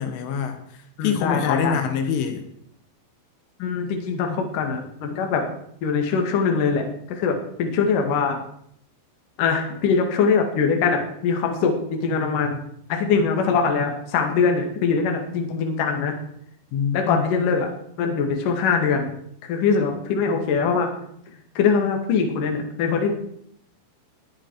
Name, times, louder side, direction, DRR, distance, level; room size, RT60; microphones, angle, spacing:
voice 1, 0.0-2.4 16.7-17.2, left 7 dB, 80° left, 7 dB, 3.9 m, -25 dB
voice 2, 1.0-1.8 3.6-5.4 5.8-8.4 9.4-12.6 12.9-16.2 16.9-17.7 18.0-19.1 19.4-20.9 21.5-23.1, left 5 dB, 55° left, 3 dB, 3.0 m, -22 dB
20.0 x 10.5 x 4.7 m, 0.70 s
omnidirectional pair, 5.7 m